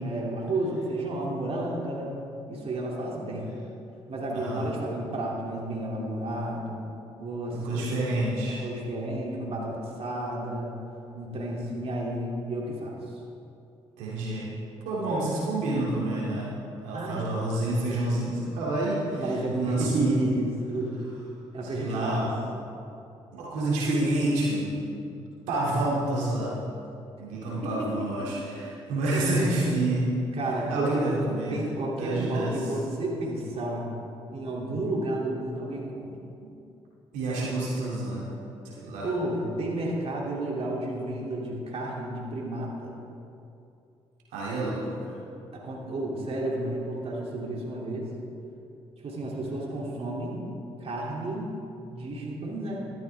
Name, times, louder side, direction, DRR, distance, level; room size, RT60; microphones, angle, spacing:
voice 1, 0.0-2.2 2.5-3.6 4.1-6.8 7.2-8.0 8.6-10.7 11.1-13.0 16.9-17.4 19.1-21.0 21.5-22.2 27.5-27.7 28.0-28.3 29.1-29.5 30.3-31.2 31.5-33.9 34.3-36.2 39.0-42.9 45.5-48.1 49.0-50.4 50.8-51.5 51.9-52.8, right 1 dB, 55° right, -3 dB, 2.9 m, -31 dB
voice 2, 4.3-4.7 7.5-8.6 14.0-14.5 14.8-16.5 16.8-20.3 21.6-22.4 23.3-24.9 25.5-26.6 27.2-30.1 30.7-31.6 32.0-32.7 36.4-36.5 37.1-38.3 38.6-39.1 44.3-45.1 47.8-48.1, right 2 dB, 80° right, -6 dB, 2.7 m, -28 dB
13.5 x 13.0 x 3.5 m, 2.7 s
hypercardioid pair, 50°, 13 cm